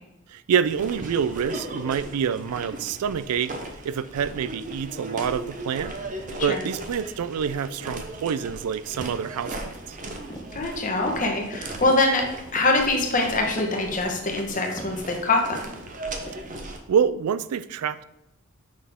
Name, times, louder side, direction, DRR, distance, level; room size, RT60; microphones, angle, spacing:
voice 1, 0.3-3.6 3.8-5.9 6.4-9.6 9.9-10.0 16.9-18.0, right 7 dB, 90° right, 15 dB, 0.3 m, -26 dB
sound 1, 0.6-16.8, right 2 dB, 35° right, 0.7 m, -37 dB
sound 2, 10.3-10.5 11.1-11.3 11.8-12.0 12.6-12.8 13.4-13.7 14.0-14.4 14.8-15.0 15.5-15.9 16.3-16.4, equal, 20° left, 0.7 m, -40 dB
voice 2, 10.5-12.2 12.5-15.6, left 2 dB, 35° left, 1 dB, 1.1 m, -23 dB
6.5 x 5.6 x 3.6 m, 0.88 s
head